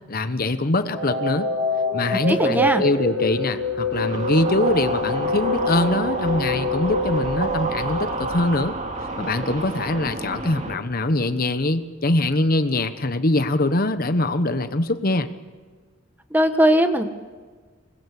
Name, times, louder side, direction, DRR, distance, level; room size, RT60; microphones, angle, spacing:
voice 1, 0.1-1.5 1.9-8.8 9.2-15.3, left 2 dB, 50° left, 10 dB, 1.1 m, -23 dB
sound 1, 0.9-8.8, left 1 dB, 70° right, 4.8 m, -26 dB
voice 2, 2.3-2.8 16.3-17.1, equal, 10° right, 8 dB, 1.4 m, -19 dB
sound 2, 3.9-10.8, right 2 dB, 40° right, 2.5 m, -30 dB
26.0 x 20.5 x 8.4 m, 1.4 s
head